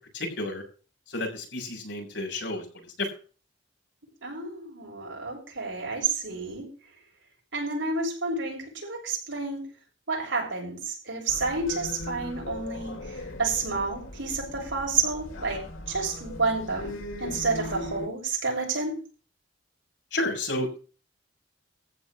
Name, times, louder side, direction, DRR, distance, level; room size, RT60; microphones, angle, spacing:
voice 1, 0.1-0.6 1.1-2.6 3.0-3.1 20.1-20.8, left 2 dB, 65° left, 1 dB, 7.1 m, -31 dB
voice 2, 4.2-6.7 7.5-9.7 10.1-15.6 15.9-19.0, right 3 dB, 75° right, 1 dB, 6.9 m, -30 dB
sound 1, 11.3-18.1, left 2 dB, 85° left, 2.7 m, -39 dB
14.5 x 5.2 x 8.7 m, 0.36 s
head